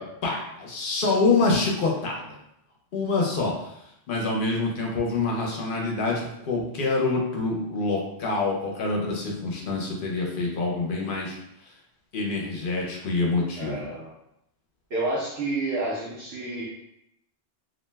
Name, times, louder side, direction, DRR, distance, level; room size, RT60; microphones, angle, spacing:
voice 1, 0.2-2.3 2.9-3.7 4.1-11.4 12.1-13.9, left 3 dB, 60° left, -1 dB, 0.7 m, -26 dB
voice 2, 13.6-14.1 14.9-16.7, right 2 dB, 70° right, -6 dB, 0.9 m, -29 dB
2.5 x 2.1 x 3.2 m, 0.79 s
omnidirectional pair, 1.1 m